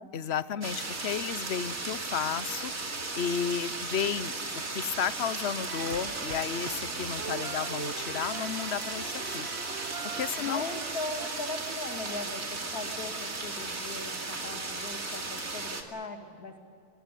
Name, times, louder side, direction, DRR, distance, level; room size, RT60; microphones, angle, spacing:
voice 1, 0.1-2.7 3.2-4.3 4.7-9.5 10.0-10.8, left 8 dB, 55° left, 15 dB, 0.9 m, -33 dB
sound 1, 0.6-15.8, right 3 dB, 65° right, 2.9 m, -36 dB
sound 2, 5.7-11.3, right 7 dB, 50° right, 1.2 m, -42 dB
voice 2, 10.4-16.6, left 2 dB, 80° left, 4 dB, 2.9 m, -39 dB
24.0 x 19.0 x 10.0 m, 2.3 s
omnidirectional pair, 1.5 m